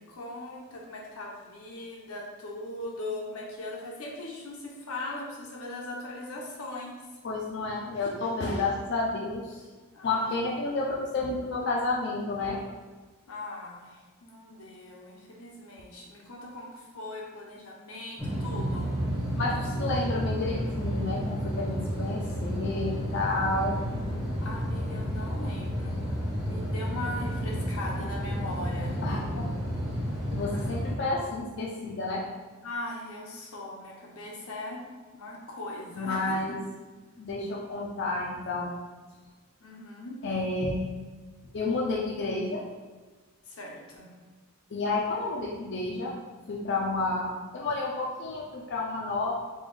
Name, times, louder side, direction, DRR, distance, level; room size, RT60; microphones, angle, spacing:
voice 1, 0.0-7.0 9.9-10.1 13.3-19.0 24.4-29.0 30.5-30.7 32.6-34.8 35.1-36.4 39.6-40.2 43.5-44.1, left 2 dB, 85° left, -1 dB, 0.7 m, -40 dB
voice 2, 7.2-9.6 10.0-12.6 19.4-23.8 29.0-29.5 30.3-32.2 36.0-36.6 37.2-38.7 40.2-40.9 41.5-42.6 44.7-46.1 46.5-49.3, left 2 dB, 50° left, -3 dB, 0.4 m, -30 dB
sound 1, 18.2-30.9, equal, 5° right, 0.7 m, -31 dB
3.5 x 2.3 x 3.2 m, 1.4 s
head